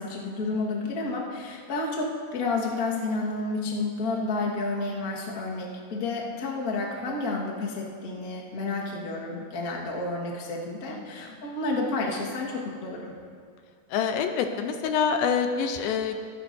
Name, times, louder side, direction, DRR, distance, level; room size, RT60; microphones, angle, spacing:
voice 1, 0.0-13.1, left 3 dB, 65° left, -3 dB, 0.9 m, -30 dB
voice 2, 13.9-16.2, left 6 dB, 80° left, 6 dB, 2.4 m, -26 dB
22.5 x 10.5 x 2.7 m, 2.1 s
omnidirectional pair, 4.4 m